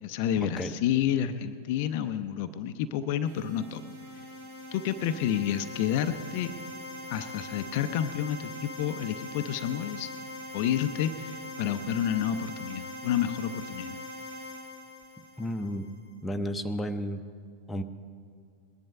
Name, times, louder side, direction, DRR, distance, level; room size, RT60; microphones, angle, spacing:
voice 1, 0.0-3.8 4.1-4.3 4.7-6.5 7.1-10.1 10.5-14.0, left 10 dB, 45° left, 9 dB, 0.5 m, -30 dB
sound 1, 3.3-16.0, left 1 dB, 60° right, 2.4 m, -42 dB
voice 2, 15.4-15.9 16.2-17.2 17.7-17.8, equal, 10° left, 6 dB, 0.7 m, -32 dB
20.0 x 10.5 x 5.4 m, 2.3 s
figure-of-eight pair, 90°, 0 cm